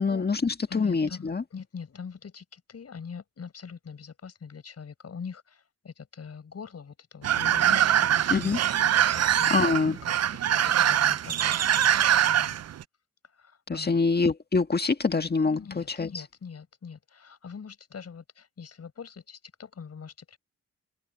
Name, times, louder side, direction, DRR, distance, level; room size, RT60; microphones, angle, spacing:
voice 1, 0.0-1.4 8.3-8.6 9.5-10.0 13.7-16.1, left 4 dB, 35° left, 1.8 m, -25 dB
voice 2, 0.7-12.6 13.3-14.0 15.5-20.4, left 6 dB, 60° left, 5.7 m, -43 dB
sound 1, 7.2-12.8, right 10 dB, 60° right, 0.6 m, -23 dB
cardioid pair, 65°, 29 cm